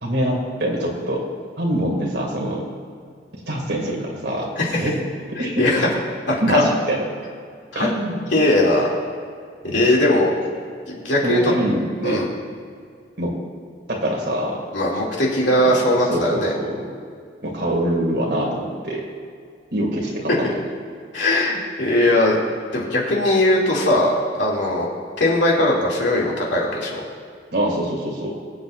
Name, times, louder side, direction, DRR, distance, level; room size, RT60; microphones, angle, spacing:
voice 1, 0.0-1.2 1.6-2.7 3.5-4.5 4.8-5.0 5.3-5.7 6.4-7.1 7.7-8.3 9.6-9.8 11.2-12.2 13.2-13.4 13.9-14.6 15.6-15.8 16.1-16.8 17.4-19.0 19.7-20.5 27.5-28.3, right 1 dB, 60° right, -2 dB, 2.4 m, -24 dB
voice 2, 5.4-5.9 6.3-6.6 7.7-7.9 8.3-8.9 9.6-10.3 10.9-11.5 12.0-12.3 14.7-16.5 21.1-22.4 22.7-24.1 24.4-24.9 25.2-27.0, left 1 dB, 75° left, -4 dB, 2.7 m, -19 dB
22.5 x 8.0 x 2.6 m, 2.2 s
head